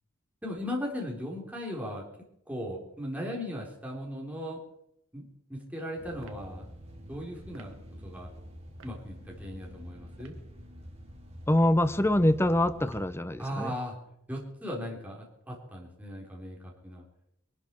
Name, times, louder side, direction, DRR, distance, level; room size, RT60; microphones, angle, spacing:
voice 1, 0.4-2.0 2.5-4.6 5.1-6.7 7.1-7.7 8.0-8.3 8.8-10.3 13.4-14.0 14.3-17.0, equal, 5° right, -2 dB, 3.6 m, -37 dB
sound 1, 6.0-13.1, equal, 30° right, 3.5 m, -47 dB
sound 2, 6.2-6.5 7.5-7.8 8.8-9.0 10.1-10.5 11.4-11.8 12.9-13.2, right 4 dB, 65° right, 1.6 m, -54 dB
voice 2, 11.5-13.7, left 1 dB, 10° left, 12 dB, 0.8 m, -24 dB
22.5 x 12.0 x 4.6 m, 0.77 s
head